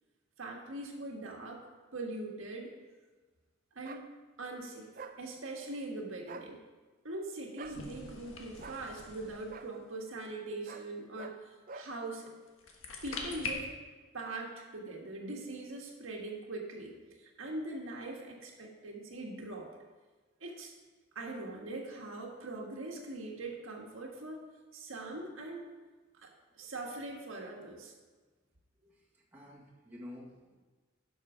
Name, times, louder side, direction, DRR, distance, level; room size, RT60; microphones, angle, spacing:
voice 1, 0.4-1.6 1.9-2.7 3.7-4.0 4.4-4.9 5.2-6.6 7.0-12.3 13.0-13.7 14.1-16.9 17.2-19.7 20.4-20.7 21.1-24.4 24.7-25.7 26.2-26.3 26.6-27.9, right 2 dB, 75° right, 0 dB, 1.6 m, -42 dB
sound 1, 3.8-4.1 5.0-5.2 6.2-6.5 7.6-7.8 8.6-8.8 9.5-9.7 10.6-10.9 11.1-11.4 11.7-11.9, right 4 dB, 45° right, 0.5 m, -46 dB
sound 2, 7.6-9.8 12.5-13.5, left 4 dB, 80° left, 1.5 m, -43 dB
voice 2, 28.8-30.5, left 1 dB, 10° right, -5 dB, 1.8 m, -50 dB
11.5 x 6.4 x 5.0 m, 1.3 s
head